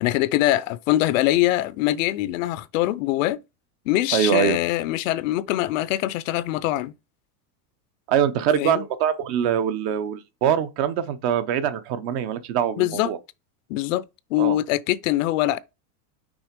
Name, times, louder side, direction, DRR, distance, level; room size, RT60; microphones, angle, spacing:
voice 1, 0.0-3.4 3.9-6.9 8.6-8.8 12.8-13.1 13.7-14.0 14.3-15.6, left 15 dB, 60° left, 0.6 m, -23 dB
voice 2, 4.1-4.6 8.1-13.2 14.4-14.6, right 9 dB, 40° right, 0.8 m, -23 dB
6.2 x 3.6 x 5.1 m
supercardioid pair, 160°, 45 cm